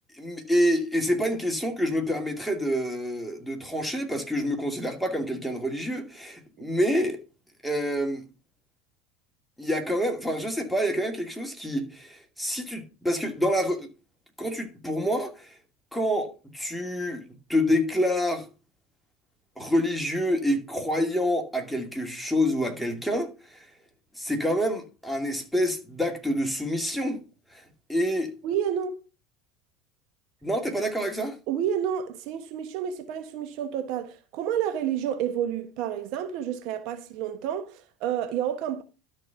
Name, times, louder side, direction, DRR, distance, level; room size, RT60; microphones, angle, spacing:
voice 1, 0.2-7.2 7.6-8.2 9.6-13.9 14.4-15.5 15.9-17.2 17.5-18.5 19.6-23.6 24.2-27.2 27.5-27.6 27.9-28.3 30.4-31.4, equal, ahead, 2.4 m, -27 dB
voice 2, 28.4-29.0 31.5-38.8, right 9 dB, 60° right, 1.2 m, -30 dB
12.5 x 4.3 x 5.7 m
hypercardioid pair, 85°, 0 cm